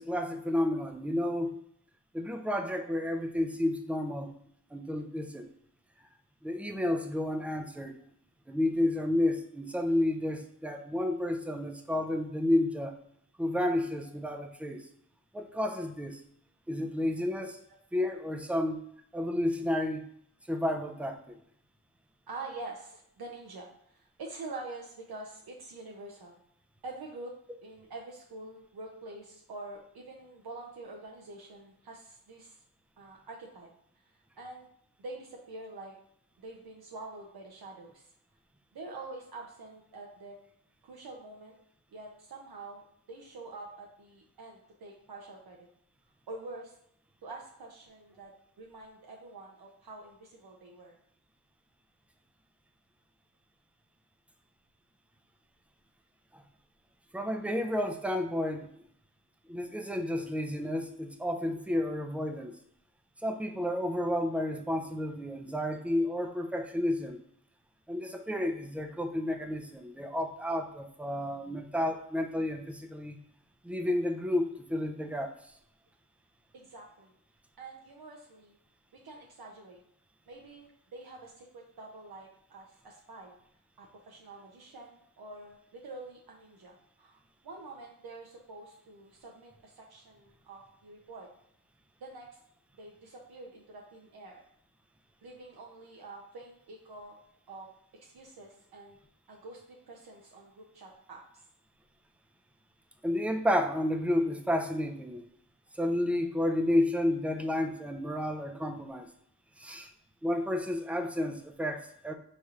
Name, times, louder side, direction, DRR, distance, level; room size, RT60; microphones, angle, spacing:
voice 1, 0.0-1.5 2.1-4.3 4.7-5.5 6.4-8.0 8.5-12.9 13.4-14.8 15.3-16.2 16.7-17.6 17.9-18.8 19.1-20.0 20.5-21.2 56.3-56.4 57.1-58.7 59.5-62.6 63.2-67.2 67.9-73.2 73.6-75.3 103.0-105.2 105.8-109.1 109.6-109.9 110.2-112.1, left 1 dB, 5° right, 5 dB, 0.4 m, -31 dB
voice 2, 22.3-26.4 26.8-27.3 27.6-32.6 33.0-33.7 34.1-34.7 35.0-35.9 36.4-38.1 38.7-40.4 40.8-41.6 41.9-42.8 43.1-45.6 46.3-46.8 47.2-51.0 76.5-77.1 77.6-78.5 79.0-79.8 80.3-83.4 83.8-91.3 92.0-92.4 92.8-94.4 95.2-97.2 97.5-97.7 98.0-99.0 99.3-101.5, right 2 dB, 75° right, -1 dB, 0.6 m, -46 dB
4.2 x 3.2 x 2.4 m, 0.69 s
wide cardioid pair, 60°, 38 cm